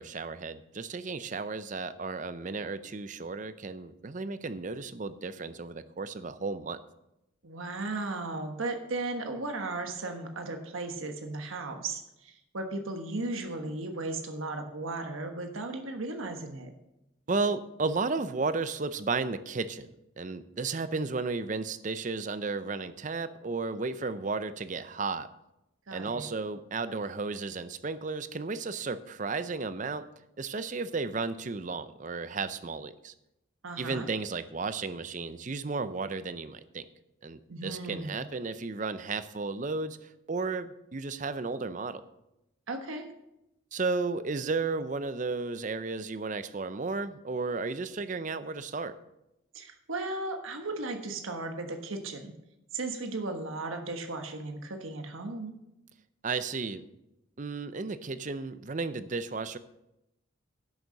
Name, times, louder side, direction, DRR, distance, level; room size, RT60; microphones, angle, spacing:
voice 1, 0.0-6.8 17.3-25.3 25.9-30.1 30.4-33.1 33.8-36.9 37.2-40.0 40.3-42.0 43.7-49.0 56.2-56.8 57.4-59.6, right 4 dB, 40° right, 13 dB, 0.5 m, -33 dB
voice 2, 7.4-16.7 25.9-26.3 33.6-34.1 37.5-38.2 42.7-43.1 49.5-52.3 52.7-55.5, right 2 dB, 80° right, 5 dB, 1.3 m, -36 dB
11.0 x 6.6 x 6.5 m, 0.88 s
head